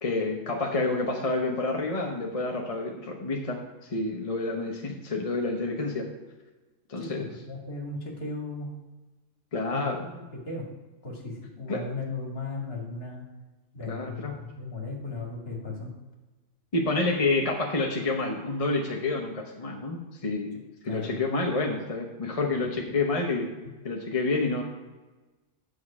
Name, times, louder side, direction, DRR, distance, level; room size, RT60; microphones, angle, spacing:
voice 1, 0.0-6.1 6.9-7.3 9.5-10.0 11.7-11.8 13.9-14.4 16.7-20.5 20.8-23.5 23.8-24.6, left 3 dB, 30° left, 1 dB, 0.9 m, -28 dB
voice 2, 7.0-8.7 9.7-10.6 11.0-13.2 13.7-15.9 20.9-21.2, left 3 dB, 50° left, 0 dB, 2.3 m, -36 dB
9.5 x 6.5 x 4.8 m, 1.2 s
omnidirectional pair, 1.4 m